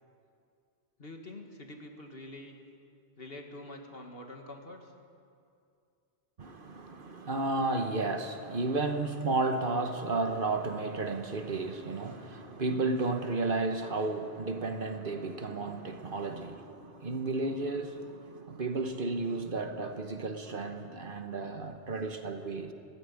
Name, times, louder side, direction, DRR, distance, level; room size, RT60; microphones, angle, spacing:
voice 1, 1.0-2.6 3.2-4.9, left 1 dB, 55° left, 2.1 m, -46 dB
voice 2, 6.4-22.7, right 3 dB, 50° right, 1.3 m, -33 dB
16.5 x 16.0 x 9.8 m
omnidirectional pair, 1.2 m